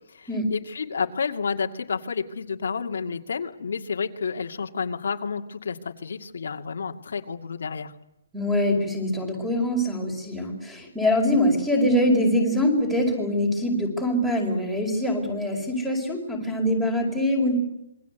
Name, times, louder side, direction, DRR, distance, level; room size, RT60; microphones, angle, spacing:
voice 1, 0.1-7.9, left 5 dB, 70° left, 4 dB, 2.3 m, -30 dB
voice 2, 8.3-17.5, left 1 dB, ahead, 4 dB, 5.0 m, -24 dB
27.0 x 23.5 x 8.2 m, 0.87 s
hypercardioid pair, 175°, 0 cm